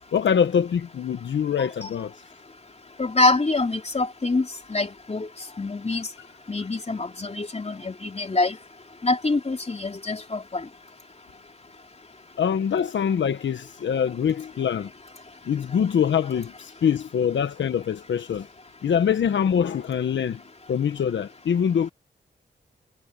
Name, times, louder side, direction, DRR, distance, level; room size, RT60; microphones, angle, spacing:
voice 1, 0.1-2.1 12.4-14.9 15.5-18.5 18.8-20.4 20.7-21.9, left 8 dB, 85° left, 1.1 m, -24 dB
voice 2, 3.0-5.3 5.6-6.1 6.5-8.6 9.0-10.7, left 2 dB, 35° left, 2.8 m, -25 dB
cardioid pair, 50°, 19 cm